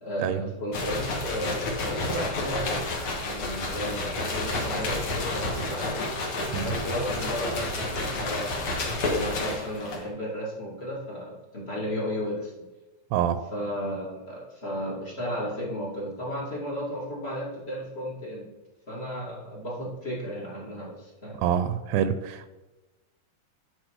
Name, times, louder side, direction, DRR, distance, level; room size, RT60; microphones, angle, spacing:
voice 1, 0.0-2.8 3.2-6.0 6.6-12.5 13.5-18.4 18.9-21.4, equal, 35° left, -4 dB, 1.0 m, -34 dB
sound 1, 0.7-10.1, left 2 dB, 55° left, 1.5 m, -30 dB
voice 2, 13.1-13.4 21.4-22.5, right 9 dB, 85° right, 11 dB, 2.6 m, -26 dB
11.0 x 4.6 x 4.7 m, 1.1 s
omnidirectional pair, 4.8 m